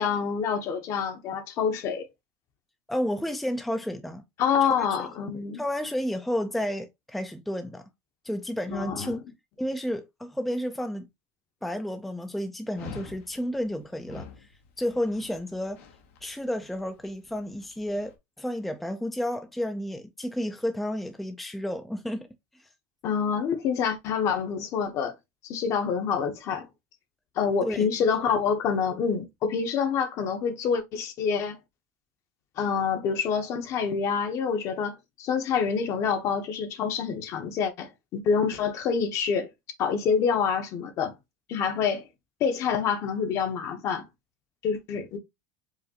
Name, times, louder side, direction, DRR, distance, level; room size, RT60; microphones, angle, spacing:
voice 1, 0.0-2.1 4.4-5.6 8.7-9.1 23.0-25.1 25.4-26.7 27.4-31.6 32.6-39.5 39.8-41.1 41.5-42.1 42.4-44.0 44.6-45.2, left 6 dB, 45° left, 0.9 m, -27 dB
voice 2, 2.9-4.2 4.6-4.9 5.5-7.8 8.2-9.2 9.6-11.1 11.6-14.3 14.8-15.8 16.2-22.3 27.6-27.9, equal, ahead, 0.4 m, -31 dB
Dog, 12.7-18.1, left 5 dB, 75° left, 1.0 m, -47 dB
4.8 x 2.6 x 2.8 m
supercardioid pair, 130°, 7 cm